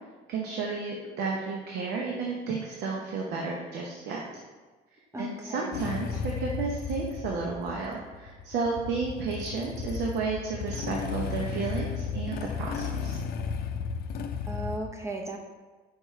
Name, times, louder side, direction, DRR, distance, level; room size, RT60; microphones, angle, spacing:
voice 1, 0.3-4.2 5.2-13.2, right 4 dB, 80° right, -1 dB, 0.8 m, -32 dB
voice 2, 5.1-5.6 14.5-15.4, right 1 dB, 15° right, 2 dB, 0.8 m, -35 dB
Motorcycle / Engine starting, 5.7-14.8, left 5 dB, 65° left, 0.5 m, -34 dB
4.8 x 4.6 x 4.4 m, 1.3 s
cardioid pair, 110°, 17 cm